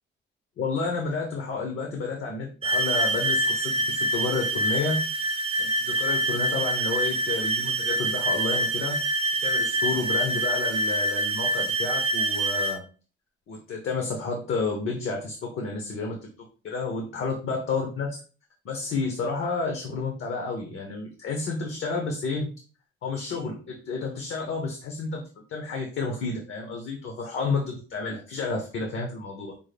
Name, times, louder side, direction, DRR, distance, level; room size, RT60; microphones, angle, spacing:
voice 1, 0.6-5.0 5.6-9.0 9.4-12.8 13.5-16.2 16.6-18.2 18.6-22.5 23.0-29.5, left 4 dB, 70° left, 2 dB, 0.8 m, -30 dB
sound 1, 2.6-12.8, right 1 dB, 25° right, 0.4 m, -26 dB
5.3 x 2.1 x 3.3 m, 0.37 s
wide cardioid pair, 175°, 21 cm